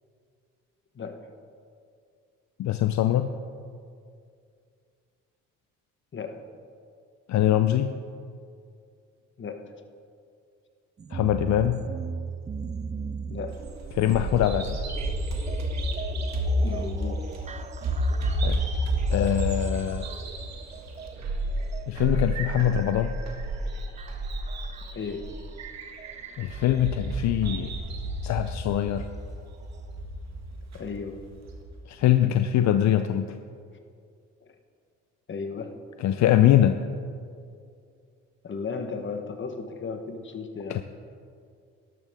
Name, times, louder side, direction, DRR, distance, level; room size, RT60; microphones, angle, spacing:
voice 1, 0.9-1.3 6.1-6.5 9.4-9.7 13.3-13.7 16.6-17.3 24.9-25.3 30.7-31.3 35.3-35.8 38.4-40.8, left 5 dB, 40° left, 6 dB, 1.2 m, -35 dB
voice 2, 2.6-3.3 7.3-7.9 11.1-11.8 13.9-14.8 18.4-18.6 19.1-20.1 21.9-23.2 26.4-27.7 28.2-29.1 31.9-33.4 36.0-36.8 40.7-40.8, left 12 dB, 65° left, 9 dB, 0.5 m, -23 dB
sound 1, 11.0-26.9 28.1-28.2 29.0-29.1 29.7-29.8, right 6 dB, 25° right, 0.5 m, -40 dB
Bird vocalization bird call bird song, 13.5-31.6, right 1 dB, 60° right, 1.8 m, -31 dB
12.5 x 12.0 x 3.6 m, 2.3 s
cardioid pair, 90°, 30 cm